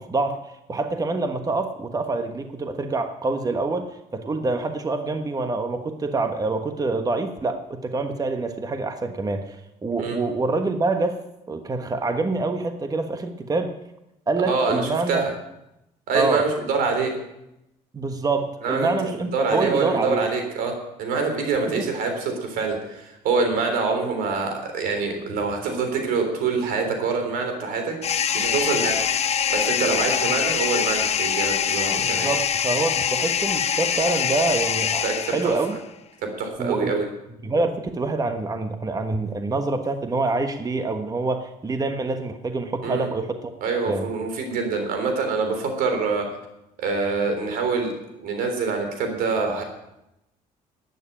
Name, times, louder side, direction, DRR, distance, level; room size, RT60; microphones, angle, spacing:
voice 1, 0.0-11.2 11.5-13.7 14.3-15.2 16.1-16.5 17.9-20.3 21.7-21.8 32.0-35.8 36.6-37.0 37.4-43.4 43.9-44.1, right 3 dB, 25° right, 7 dB, 1.3 m, -26 dB
voice 2, 14.5-14.8 15.1-15.3 16.1-17.1 18.6-18.9 19.3-20.7 21.0-28.0 28.3-29.0 29.5-32.3 35.0-35.6 36.2-37.1 42.8-43.1 43.6-46.3 46.8-49.6, right 4 dB, 85° right, 5 dB, 3.6 m, -25 dB
sound 1, 28.0-35.8, left 8 dB, 45° left, 0.8 m, -24 dB
12.0 x 9.5 x 8.7 m, 0.88 s
cardioid pair, 90°, 15 cm